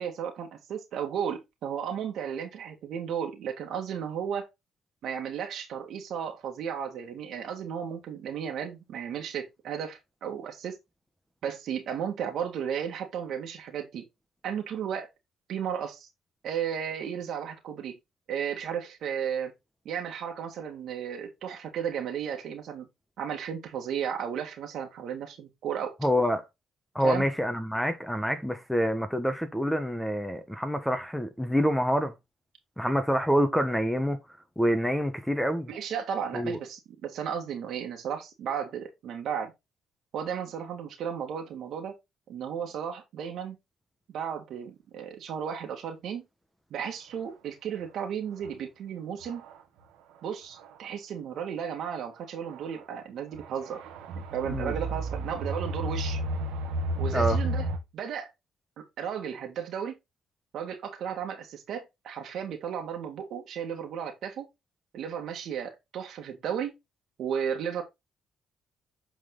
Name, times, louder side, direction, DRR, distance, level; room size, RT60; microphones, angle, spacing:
voice 1, 0.0-4.5 5.0-10.8 11.4-14.0 14.4-15.1 15.5-16.1 16.4-17.9 18.3-19.5 19.9-22.9 23.2-26.0 27.0-27.3 35.7-39.5 40.1-42.0 42.3-43.6 44.1-46.2 46.7-49.4 50.2-53.8 54.1-56.2 57.0-57.6 57.9-58.3 59.0-59.9 60.5-64.5 64.9-66.7 67.2-67.8, right 8 dB, 70° right, 1.9 m, -34 dB
voice 2, 26.0-26.4 26.9-32.1 32.8-34.2 34.6-35.7 36.3-36.6 54.5-54.7 57.1-57.4, equal, ahead, 1.3 m, -27 dB
sound 1, 48.4-48.5 49.2-49.6 50.6-50.7 52.5-52.8 53.3-57.8, right 1 dB, 90° right, 1.6 m, -32 dB
8.4 x 4.1 x 3.9 m
cardioid pair, 80°, 0 cm